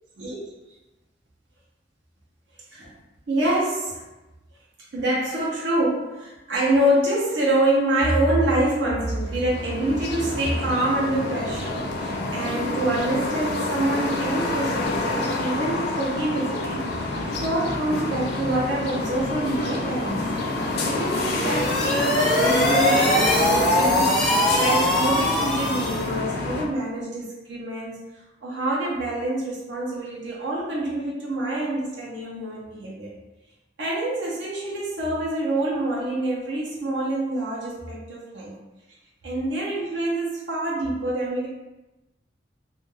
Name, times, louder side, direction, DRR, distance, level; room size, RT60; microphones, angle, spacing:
voice 1, 3.3-4.0 4.9-20.4 20.8-24.1 24.5-28.0 28.4-33.1 33.8-38.5 39.2-41.5, right 1 dB, 80° right, -5 dB, 0.7 m, -26 dB
sound 1, 9.2-26.6, left 2 dB, 60° left, 0.4 m, -27 dB
sound 2, 21.3-26.1, left 1 dB, ahead, 0.4 m, -22 dB
2.4 x 2.2 x 3.1 m, 1.0 s
head